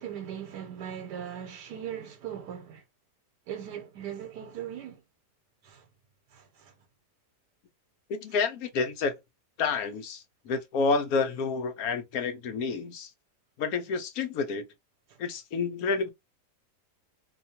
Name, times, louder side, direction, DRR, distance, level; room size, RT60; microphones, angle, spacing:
voice 1, 0.0-2.8 3.5-5.0 5.6-5.9 6.3-6.7 15.1-15.2, right 9 dB, 85° right, 1.3 m, -39 dB
voice 2, 8.1-9.1 9.6-13.1 13.6-14.6 15.2-16.1, left 4 dB, 70° left, 1.0 m, -29 dB
2.8 x 2.3 x 2.7 m
omnidirectional pair, 1.8 m